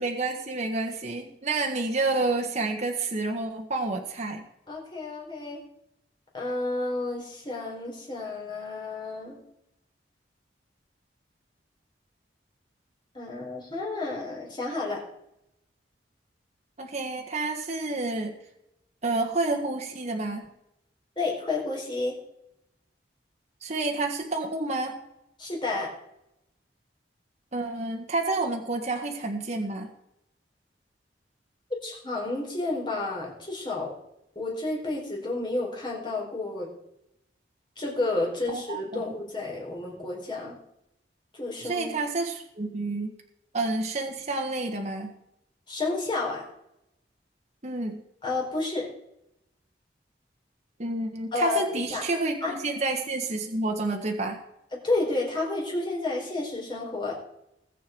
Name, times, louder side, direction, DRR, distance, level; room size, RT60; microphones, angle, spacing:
voice 1, 0.0-4.4 16.8-18.3 19.0-20.5 23.6-25.0 27.5-29.9 38.5-39.1 41.6-43.1 43.5-45.1 47.6-48.0 50.8-54.4, right 2 dB, 40° right, 2 dB, 1.5 m, -29 dB
voice 2, 4.7-5.6 6.3-9.4 13.1-15.0 21.2-22.2 25.4-25.9 31.8-33.9 34.4-36.7 37.8-40.5 41.4-41.9 45.7-46.4 48.2-48.9 51.3-52.0 52.4-52.5 54.8-57.2, left 2 dB, 25° left, -1 dB, 4.5 m, -30 dB
20.0 x 8.1 x 4.6 m, 0.81 s
head